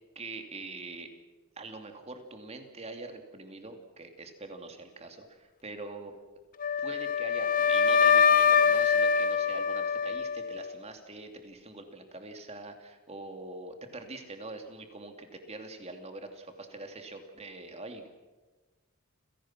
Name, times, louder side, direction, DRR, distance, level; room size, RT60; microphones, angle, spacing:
voice 1, 0.1-1.1 1.6-6.1 6.8-18.1, right 2 dB, 30° right, 5 dB, 2.7 m, -44 dB
Wind instrument woodwind instrument, 6.6-10.7, left 6 dB, 40° left, 0.7 m, -24 dB
29.5 x 17.5 x 6.1 m, 1.2 s
head